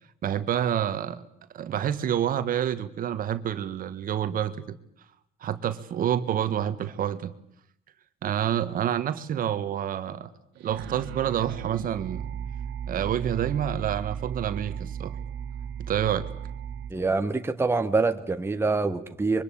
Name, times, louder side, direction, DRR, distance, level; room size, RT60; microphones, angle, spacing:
voice 1, 0.2-1.2 1.5-4.8 5.4-7.3 8.2-10.3 10.6-12.3 12.9-15.2 15.9-16.3, right 10 dB, 55° right, 11 dB, 1.7 m, -28 dB
sound 1, 10.6-16.9, right 8 dB, 85° right, 2.0 m, -36 dB
voice 2, 16.9-19.4, right 3 dB, 15° right, 8 dB, 1.2 m, -25 dB
25.0 x 23.5 x 8.7 m, 0.71 s
cardioid pair, 110°, 17 cm